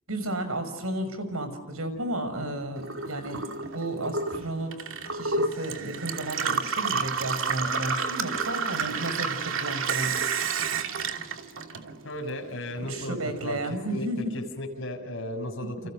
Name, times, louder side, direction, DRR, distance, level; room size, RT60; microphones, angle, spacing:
voice 1, 0.1-3.4 3.7-10.2 12.8-14.2, right 1 dB, 85° right, 9 dB, 6.3 m, -33 dB
Gurgling / Water tap faucet / Sink (filling or washing), 2.8-12.3 12.6-13.5, right 5 dB, 65° right, 2.6 m, -30 dB
voice 2, 12.0-15.8, left 1 dB, 60° left, 4 dB, 6.2 m, -35 dB
30.0 x 29.5 x 6.6 m, 1.0 s
head